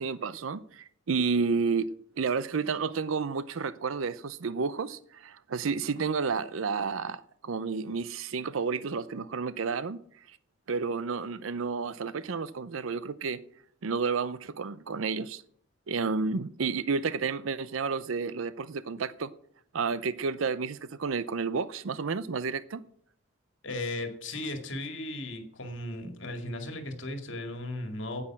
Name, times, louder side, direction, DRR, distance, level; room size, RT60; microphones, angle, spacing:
voice 1, 0.0-1.9 2.2-10.0 10.7-13.4 13.8-15.4 15.9-19.3 19.7-22.8, right 5 dB, 85° right, 0.6 m, -31 dB
voice 2, 23.6-28.2, left 1 dB, 65° left, 2.2 m, -36 dB
9.7 x 8.5 x 8.6 m
head